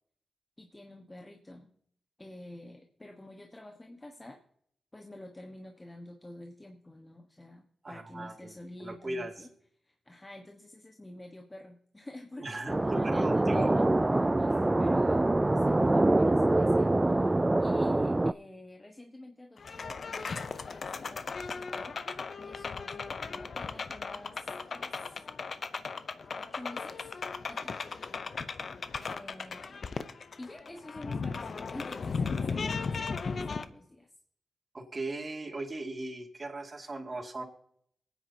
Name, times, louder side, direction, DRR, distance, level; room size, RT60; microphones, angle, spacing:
voice 1, 0.6-1.7 2.2-4.4 4.9-9.5 9.8-13.9 14.2-16.9 17.6-20.4 20.7-22.0 22.4-25.2 26.3-27.1 27.5-27.8 29.0-29.8 30.4-34.1, left 1 dB, 20° left, 3 dB, 1.3 m, -49 dB
voice 2, 7.8-8.5 8.8-9.5 12.4-12.8 13.0-13.7 34.7-37.4, right 2 dB, 40° right, 2 dB, 2.3 m, -37 dB
sound 1, 12.7-18.3, right 2 dB, 20° right, 0.3 m, -25 dB
sound 2, 19.6-33.6, left 5 dB, 60° left, 0.7 m, -37 dB
23.5 x 9.3 x 2.8 m, 0.68 s
cardioid pair, 60°, 0 cm